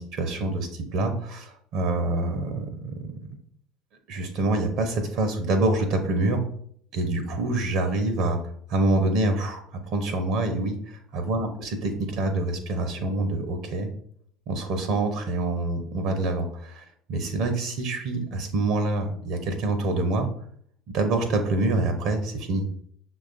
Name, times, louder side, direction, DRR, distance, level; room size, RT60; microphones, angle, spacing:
voice 1, 0.0-2.9 4.1-6.5 6.9-8.4 8.7-13.9 14.5-20.3 20.9-22.7, right 2 dB, 60° right, 6 dB, 0.6 m, -26 dB
6.2 x 2.3 x 3.7 m, 0.64 s
hypercardioid pair, 70°, 0 cm